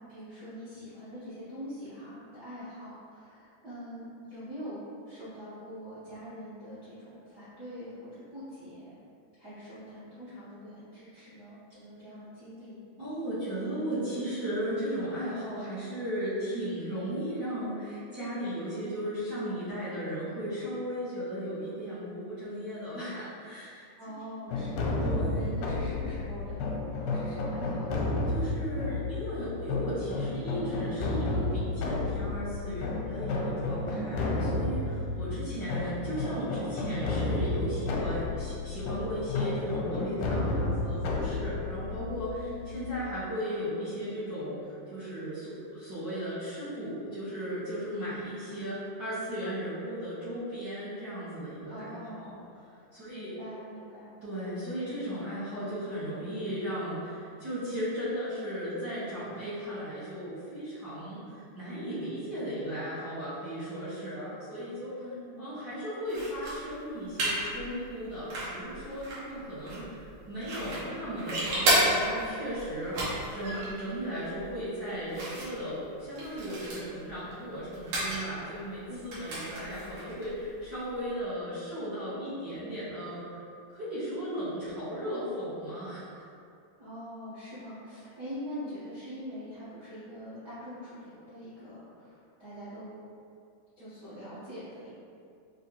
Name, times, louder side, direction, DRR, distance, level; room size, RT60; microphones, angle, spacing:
voice 1, 0.1-9.0 9.4-12.8 24.0-28.1 35.0-35.4 42.4-42.8 51.7-52.3 53.1-54.1 65.0-65.5 78.9-79.1 86.8-93.0 93.8-94.9, equal, 85° right, -13 dB, 0.8 m, -44 dB
voice 2, 13.0-24.1 25.0-25.5 28.3-52.4 52.9-53.4 54.2-65.0 65.4-83.4 83.7-86.1, equal, 50° right, -14 dB, 1.2 m, -36 dB
sound 1, 24.5-43.2, left 2 dB, 90° left, 2.1 m, -32 dB
sound 2, 66.1-81.2, right 1 dB, 65° right, 2.2 m, -34 dB
6.0 x 2.8 x 2.9 m, 2.4 s
omnidirectional pair, 3.5 m